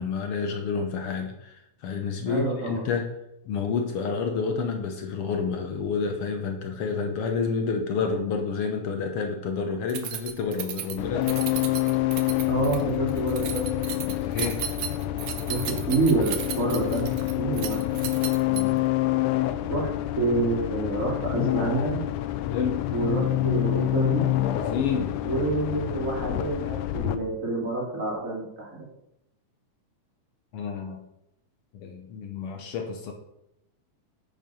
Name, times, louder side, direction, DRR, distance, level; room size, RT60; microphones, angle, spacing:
voice 1, 0.0-3.1 3.4-11.3 14.0-14.7 18.5-18.8 22.4-22.9 24.5-25.2 30.5-31.0 31.7-33.1, left 5 dB, 70° left, 4 dB, 1.4 m, -29 dB
voice 2, 2.3-2.8 12.5-13.7 15.5-15.6 15.9-17.1 17.4-18.0 19.6-19.9 20.2-22.0 22.9-24.3 25.2-28.9, right 3 dB, 25° right, -2 dB, 2.6 m, -27 dB
Keys jangling, 9.9-18.9, right 10 dB, 75° right, 2.2 m, -35 dB
sound 1, 11.0-27.2, left 15 dB, 90° left, 2.1 m, -27 dB
8.9 x 5.3 x 5.4 m, 0.82 s
omnidirectional pair, 3.5 m